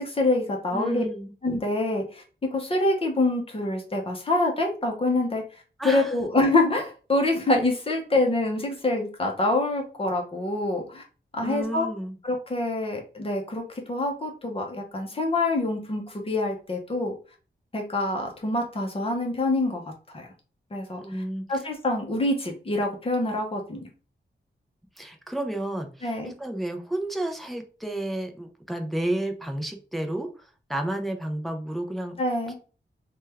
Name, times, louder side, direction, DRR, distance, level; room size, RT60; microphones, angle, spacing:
voice 1, 0.0-1.0 1.4-5.4 5.8-11.0 11.3-11.9 12.2-17.1 17.7-19.8 20.1-20.3 20.7-21.0 21.5-23.9 26.0-26.3 32.2-32.6, left 2 dB, 30° left, 2 dB, 0.7 m, -26 dB
voice 2, 0.7-1.3 5.8-6.1 11.4-12.2 21.0-21.5 25.0-32.2, right 1 dB, ahead, 4 dB, 0.4 m, -31 dB
3.2 x 2.2 x 3.3 m, 0.36 s
wide cardioid pair, 180°, 20 cm